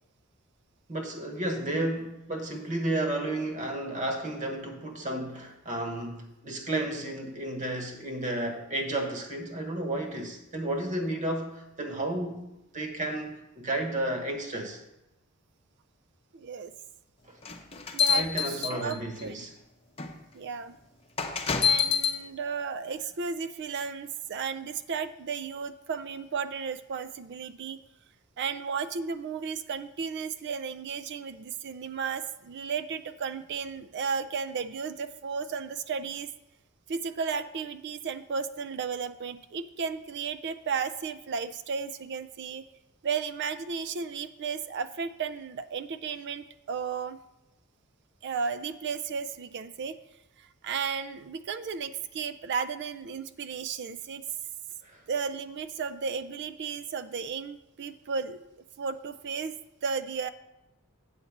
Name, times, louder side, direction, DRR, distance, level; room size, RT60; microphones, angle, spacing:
voice 1, 0.9-12.4 12.7-14.8 18.1-19.5 54.8-55.0, right 1 dB, 35° right, 3 dB, 1.2 m, -32 dB
voice 2, 16.3-16.7 17.9-19.5 20.3-20.8 21.6-27.8 28.4-36.3 36.9-42.6 43.0-47.2 48.2-50.0 50.4-54.3 55.1-59.6 59.8-60.3, right 5 dB, 55° right, 11 dB, 0.4 m, -34 dB
sound 1, 17.4-19.2 20.0-20.1 21.2-22.2, left 7 dB, 25° left, 0.8 m, -26 dB
8.5 x 4.2 x 7.1 m, 0.91 s
head